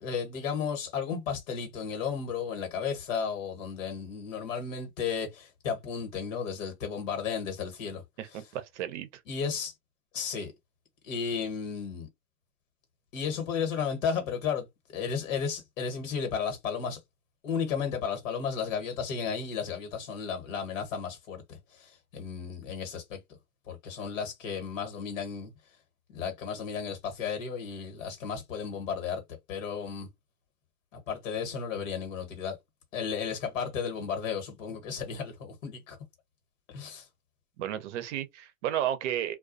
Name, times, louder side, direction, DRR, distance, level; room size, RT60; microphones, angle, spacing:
voice 1, 0.0-8.0 8.3-8.4 9.3-9.7 10.1-10.5 11.0-12.1 13.1-17.0 17.4-23.2 23.7-25.5 26.1-30.1 30.9-32.5 32.9-36.0 36.7-37.1, left 6 dB, 60° left, 1.3 m, -34 dB
voice 2, 8.2-9.1 37.6-39.3, right 11 dB, 55° right, 0.6 m, -33 dB
2.3 x 2.3 x 2.4 m
hypercardioid pair, 130°, 43 cm